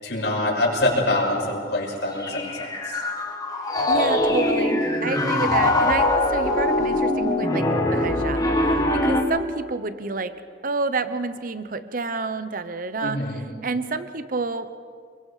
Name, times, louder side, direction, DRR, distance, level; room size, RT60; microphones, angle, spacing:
voice 1, 0.0-3.0 13.0-13.4, left 1 dB, 75° left, -3 dB, 6.5 m, -25 dB
Piano, 2.2-9.2, left 1 dB, 20° left, 2.1 m, -22 dB
voice 2, 3.9-10.3 10.6-14.7, right 3 dB, 50° right, 12 dB, 0.9 m, -29 dB
29.0 x 23.0 x 5.0 m, 2.1 s
head